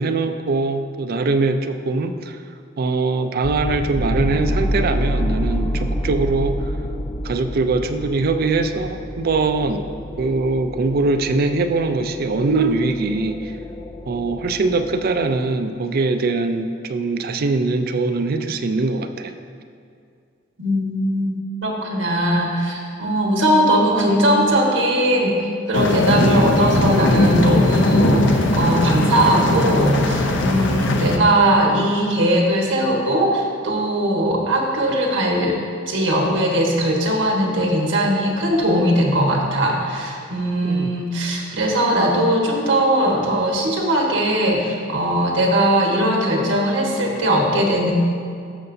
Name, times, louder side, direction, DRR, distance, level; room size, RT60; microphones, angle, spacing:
voice 1, 0.0-2.4 2.8-6.6 7.2-9.9 10.2-13.5 14.1-19.3 31.0-31.2 40.6-40.9, right 3 dB, 50° right, 8 dB, 0.4 m, -22 dB
sound 1, 3.4-15.4, equal, 20° left, 0.3 m, -28 dB
voice 2, 20.6-21.3 21.6-25.4 25.7-35.6 35.9-47.9, right 1 dB, 80° right, 0 dB, 1.4 m, -19 dB
sound 2, 25.7-31.2, left 1 dB, 70° left, 0.6 m, -19 dB
12.5 x 6.7 x 2.7 m, 2.3 s
head